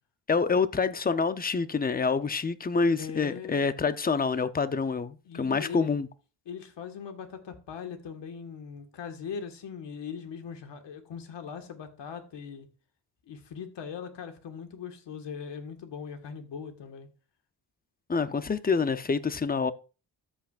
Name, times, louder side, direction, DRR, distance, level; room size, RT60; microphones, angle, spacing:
voice 1, 0.3-6.1 18.1-19.7, left 5 dB, 20° left, 0.6 m, -27 dB
voice 2, 3.0-3.7 5.3-5.9 6.5-12.7 13.3-17.1, left 6 dB, 75° left, 1.7 m, -40 dB
13.5 x 5.9 x 2.4 m
cardioid pair, 95°, 43 cm